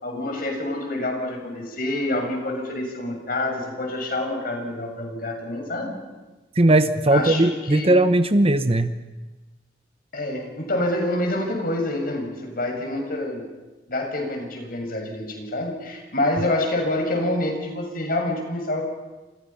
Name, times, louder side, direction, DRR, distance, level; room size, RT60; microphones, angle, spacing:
voice 1, 0.0-6.0 7.1-7.9 10.1-13.4 13.9-18.8, left 1 dB, 50° left, 3 dB, 7.0 m, -27 dB
voice 2, 6.6-8.9, right 1 dB, 35° right, 11 dB, 1.1 m, -18 dB
29.5 x 28.0 x 5.8 m, 1.2 s
head